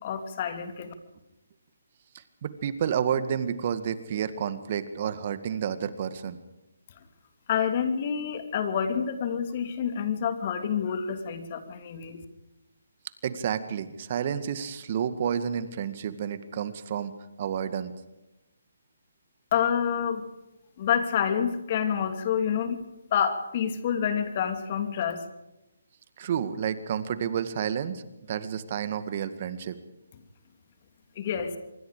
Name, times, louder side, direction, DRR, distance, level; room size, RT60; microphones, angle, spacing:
voice 1, 0.0-0.9 7.5-12.2 19.5-20.3 20.8-22.8 23.1-25.2 31.2-31.6, left 8 dB, 40° left, 8 dB, 2.8 m, -28 dB
voice 2, 2.4-6.4 13.2-17.9 26.2-28.0 28.3-29.8, right 8 dB, 45° right, 12 dB, 2.0 m, -30 dB
26.0 x 23.5 x 5.0 m, 0.98 s
figure-of-eight pair, 145°, 0 cm